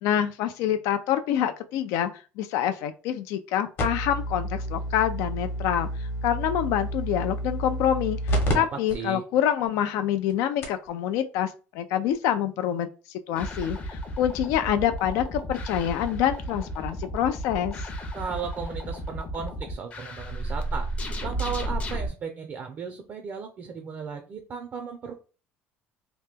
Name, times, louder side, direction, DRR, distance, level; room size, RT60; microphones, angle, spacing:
voice 1, 0.0-2.1 2.4-5.9 6.2-12.9 13.3-17.8, left 10 dB, 75° left, 8 dB, 0.3 m, -26 dB
sound 1, 3.8-8.5 8.9-9.0 9.6-9.7 10.3-10.4 10.6-10.9 12.1-12.2, equal, 45° left, 0.9 m, -30 dB
voice 2, 8.5-9.2 18.1-20.9 21.2-25.1, right 6 dB, 35° right, 5 dB, 0.5 m, -35 dB
sound 2, 13.3-22.1, right 1 dB, 25° left, 0.6 m, -33 dB
2.9 x 2.2 x 3.4 m, 0.34 s
cardioid pair, 150°, 5 cm